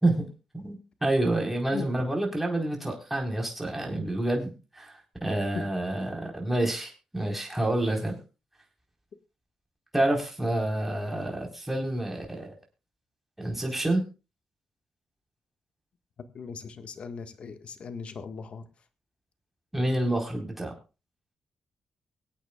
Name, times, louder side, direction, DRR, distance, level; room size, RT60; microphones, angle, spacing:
voice 1, 0.0-8.2 9.9-12.5 13.4-14.0 19.7-20.7, right 1 dB, 10° right, 1 dB, 4.3 m, -28 dB
voice 2, 16.3-18.6, left 5 dB, 60° left, 8 dB, 1.6 m, -38 dB
24.5 x 8.6 x 2.4 m, 0.30 s
cardioid pair, 90°, 2 cm